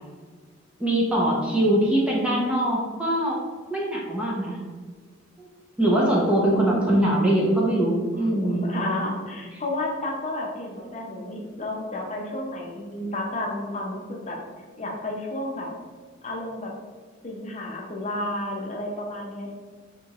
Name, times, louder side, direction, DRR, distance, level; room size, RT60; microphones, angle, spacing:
voice 1, 0.8-3.4 3.7-4.6 5.4-5.5 5.8-8.7, right 1 dB, 5° right, -4 dB, 0.5 m, -22 dB
voice 2, 6.5-7.2 8.1-14.4 14.8-15.7 16.2-16.7 17.2-19.5, left 1 dB, 35° left, -2 dB, 0.6 m, -31 dB
4.3 x 2.9 x 2.4 m, 1.5 s
head